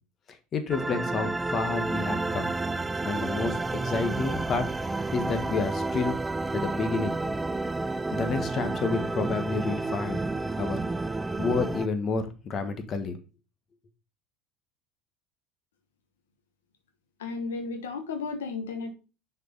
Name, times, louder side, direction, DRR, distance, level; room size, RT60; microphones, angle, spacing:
voice 1, 0.3-2.5 3.0-4.7 5.1-6.2 6.5-7.2 8.1-10.3 10.6-10.8 11.4-13.2, left 4 dB, 40° left, 8 dB, 1.3 m, -30 dB
sound 1, 0.7-11.9, right 2 dB, 15° right, 0.4 m, -30 dB
voice 2, 17.2-18.9, left 4 dB, 85° left, 6 dB, 1.1 m, -33 dB
6.5 x 4.6 x 4.0 m, 0.33 s
hypercardioid pair, 85°, 0 cm